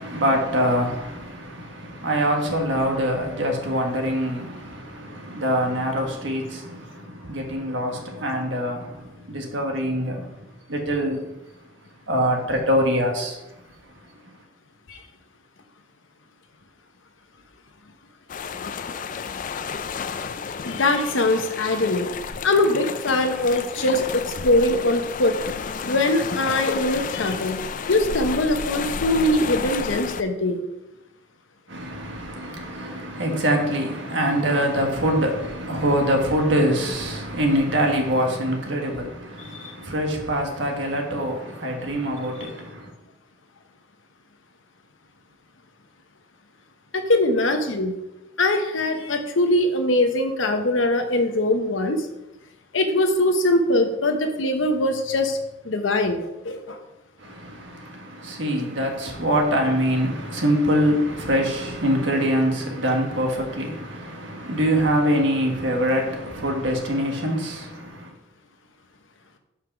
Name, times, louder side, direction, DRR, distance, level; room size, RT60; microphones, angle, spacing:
voice 1, 0.0-10.3 10.7-11.3 12.1-13.4 31.7-42.9 57.2-68.1, equal, 70° right, 1.4 m, -24 dB
sound 1, 18.3-30.2, left 5 dB, 45° left, 0.4 m, -31 dB
voice 2, 20.7-22.1 22.4-25.3 25.8-27.6 27.9-30.6 39.5-39.7 46.9-47.9 48.4-52.1 52.7-55.4 55.6-56.8, left 1 dB, 85° left, 0.9 m, -22 dB
5.7 x 4.8 x 5.9 m
head